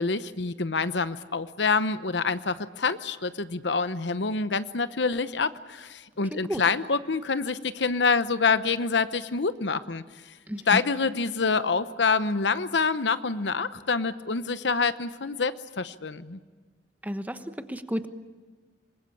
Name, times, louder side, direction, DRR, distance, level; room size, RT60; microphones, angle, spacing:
voice 1, 0.0-10.0 10.7-16.4, left 4 dB, 80° left, 13 dB, 0.9 m, -26 dB
voice 2, 6.3-6.6 10.5-10.8 17.0-18.1, equal, 10° right, 9 dB, 1.1 m, -32 dB
26.5 x 21.5 x 8.5 m, 1.4 s
head